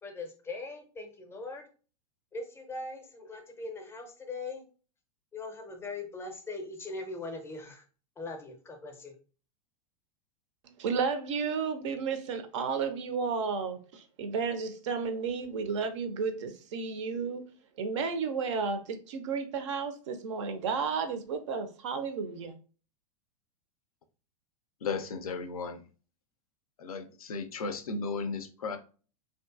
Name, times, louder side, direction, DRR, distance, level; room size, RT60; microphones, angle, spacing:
voice 1, 0.0-1.6 2.3-4.6 5.3-7.8 8.2-9.1, left 3 dB, 10° left, 0.5 m, -40 dB
voice 2, 10.8-17.4 17.8-22.6, right 5 dB, 50° right, 0.4 m, -32 dB
voice 3, 24.8-25.9 26.8-28.8, left 4 dB, 65° left, 0.4 m, -35 dB
2.6 x 2.5 x 2.3 m
figure-of-eight pair, 95°, 20 cm